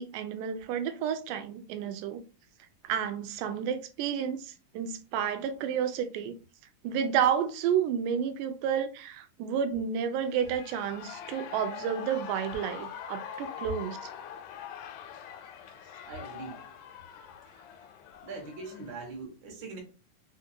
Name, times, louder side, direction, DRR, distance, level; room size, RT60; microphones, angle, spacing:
voice 1, 0.0-2.2 2.8-6.3 6.8-14.0, right 8 dB, 85° right, 2.1 m, -31 dB
Shout / Cheering, 10.2-19.1, left 8 dB, 85° left, 2.1 m, -43 dB
voice 2, 16.1-16.6 18.2-19.8, right 3 dB, 60° right, 1.2 m, -41 dB
5.0 x 2.4 x 2.7 m
omnidirectional pair, 3.7 m